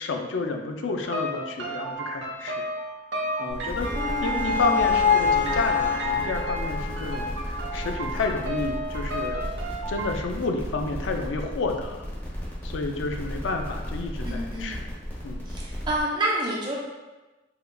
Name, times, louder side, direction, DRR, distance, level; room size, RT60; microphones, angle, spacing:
voice 1, 0.0-2.7 3.4-3.9 4.2-9.4 9.9-12.1 12.6-14.8 15.2-15.5, left 3 dB, 90° left, 4 dB, 0.4 m, -30 dB
sound 1, 1.0-10.1, right 1 dB, 75° right, 0.6 m, -34 dB
sound 2, 3.4-8.6, left 5 dB, 50° left, 0.7 m, -27 dB
sound 3, 3.5-16.0, equal, 10° left, 0.9 m, -35 dB
voice 2, 3.9-4.9 14.2-14.7 15.5-16.8, right 1 dB, 25° right, -4 dB, 0.6 m, -29 dB
3.7 x 3.2 x 2.2 m, 1.1 s
head